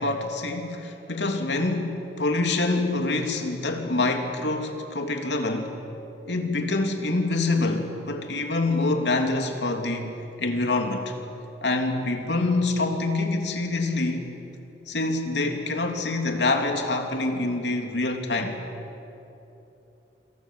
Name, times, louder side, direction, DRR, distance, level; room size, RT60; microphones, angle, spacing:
voice 1, 0.0-5.8 6.3-11.1 11.6-14.3 14.9-18.6, left 2 dB, 75° left, 4 dB, 3.1 m, -26 dB
28.5 x 27.0 x 7.7 m, 3.0 s
head